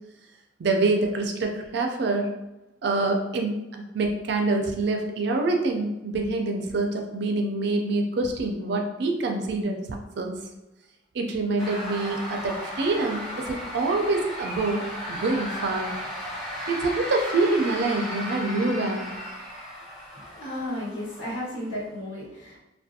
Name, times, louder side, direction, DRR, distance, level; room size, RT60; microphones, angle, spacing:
voice 1, 0.6-2.3 2.8-9.8 10.2-10.4 11.1-14.8 15.1-16.0 16.7-19.1, right 2 dB, 60° right, 3 dB, 0.4 m, -26 dB
sound 1, 11.6-21.7, equal, 35° left, 1.2 m, -35 dB
voice 2, 20.1-22.6, left 1 dB, 80° left, -6 dB, 1.1 m, -34 dB
2.4 x 2.2 x 2.6 m, 0.97 s
head